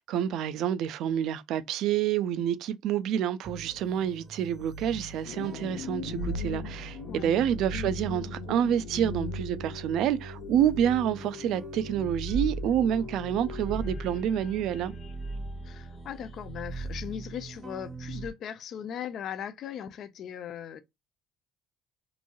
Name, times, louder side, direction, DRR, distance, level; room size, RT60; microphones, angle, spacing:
voice 1, 0.0-14.9, right 10 dB, 75° right, 0.4 m, -28 dB
sound 1, 3.4-18.3, right 2 dB, 35° right, 0.7 m, -39 dB
sound 2, 5.2-14.2, left 9 dB, 90° left, 0.8 m, -41 dB
sound 3, 13.5-17.8, left 3 dB, 45° left, 0.9 m, -52 dB
voice 2, 15.6-20.8, left 9 dB, 60° left, 0.4 m, -38 dB
3.0 x 2.6 x 2.2 m
cardioid pair, 95°, 0 cm